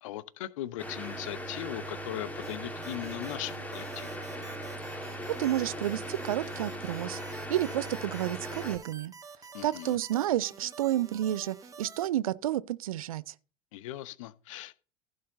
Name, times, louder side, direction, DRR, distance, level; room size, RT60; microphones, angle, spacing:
voice 1, 0.0-4.1 9.5-10.0 13.7-14.7, left 14 dB, 60° left, 0.7 m, -39 dB
sound 1, 0.8-8.8, equal, 10° left, 1.8 m, -39 dB
sound 2, 2.4-12.1, right 5 dB, 15° right, 1.3 m, -49 dB
voice 2, 5.4-9.1 9.6-13.3, right 13 dB, 65° right, 0.5 m, -31 dB
15.0 x 6.6 x 4.0 m
figure-of-eight pair, 70°, 19 cm